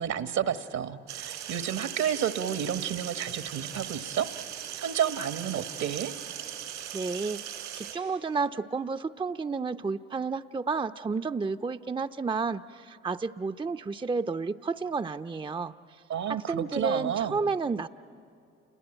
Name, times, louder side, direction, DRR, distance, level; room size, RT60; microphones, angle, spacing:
voice 1, 0.0-4.3 4.8-6.1 16.1-17.4, right 9 dB, 60° right, 12 dB, 1.3 m, -30 dB
sound 1, 1.1-8.0, right 11 dB, 80° right, 3.2 m, -39 dB
voice 2, 6.9-15.7 16.3-17.9, right 4 dB, 15° right, 11 dB, 0.6 m, -31 dB
29.0 x 21.0 x 9.0 m, 2.5 s
hypercardioid pair, 50°, 30 cm